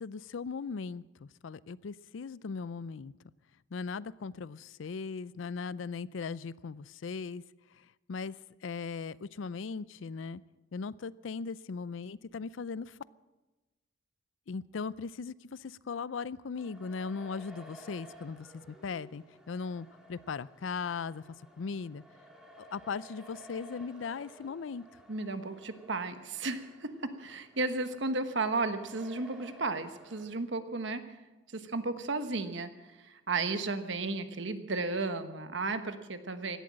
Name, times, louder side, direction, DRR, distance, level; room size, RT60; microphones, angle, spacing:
voice 1, 0.0-3.1 3.7-7.4 7.7-10.4 10.7-13.0 14.5-21.2 21.6-22.0 22.6-24.8, left 5 dB, 80° left, 19 dB, 0.5 m, -38 dB
sound 1, 16.5-30.2, right 1 dB, 5° right, 2.5 m, -55 dB
voice 2, 25.1-31.0 31.5-32.7 33.0-36.6, right 3 dB, 65° right, 9 dB, 1.2 m, -34 dB
16.5 x 11.5 x 7.5 m, 1.1 s
head